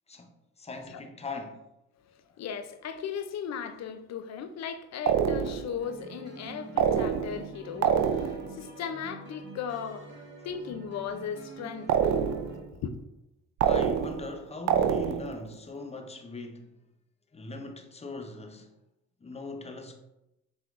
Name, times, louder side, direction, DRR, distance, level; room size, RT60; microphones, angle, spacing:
voice 1, 0.6-1.6 13.6-16.7 17.3-18.7 19.2-20.0, left 3 dB, 20° left, 0.7 m, -40 dB
voice 2, 2.1-12.2 12.8-13.0, left 7 dB, 60° left, 0.5 m, -37 dB
sound 1, 5.1-5.8 6.8-7.5 7.8-8.6 11.9-12.6 13.6-14.3 14.7-15.4, right 8 dB, 65° right, 0.5 m, -26 dB
sound 2, 5.8-12.6, right 2 dB, 40° right, 1.3 m, -46 dB
5.9 x 3.4 x 2.5 m
cardioid pair, 90°, 30 cm